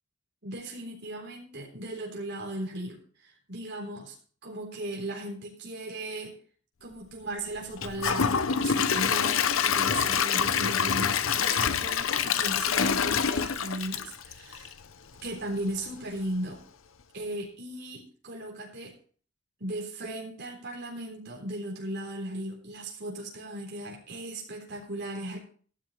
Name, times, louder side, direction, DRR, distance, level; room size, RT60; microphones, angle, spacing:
voice 1, 0.4-4.2 4.4-6.3 6.8-14.7 15.2-16.6 17.1-18.9 19.6-25.4, right 1 dB, 55° right, -1 dB, 3.7 m, -37 dB
Gurgling / Toilet flush / Trickle dribble, 7.8-14.8 15.2-15.3 15.8-15.9, left 7 dB, 75° left, 0.7 m, -26 dB
13.5 x 12.5 x 3.2 m, 0.43 s
head